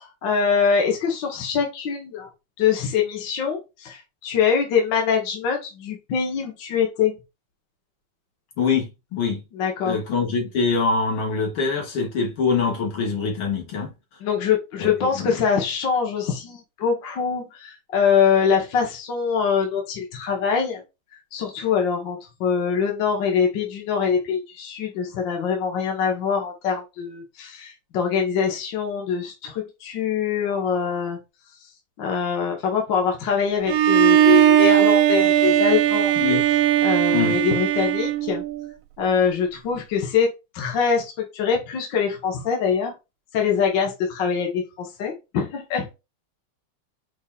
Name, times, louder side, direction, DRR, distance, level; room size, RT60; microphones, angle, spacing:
voice 1, 0.0-2.3 2.6-7.2 9.5-10.0 14.2-20.8 21.3-31.2 32.0-36.2 36.8-38.4 39.0-40.3 40.5-43.0 43.3-45.9, left 6 dB, 60° left, 1.8 m, -23 dB
voice 2, 8.6-9.4 9.8-13.9 14.8-14.9 15.2-15.4 36.2-36.5 37.1-37.4, left 5 dB, 80° left, 2.5 m, -24 dB
Bowed string instrument, 33.7-38.7, right 11 dB, 75° right, 1.3 m, -18 dB
5.6 x 3.8 x 2.4 m
omnidirectional pair, 2.3 m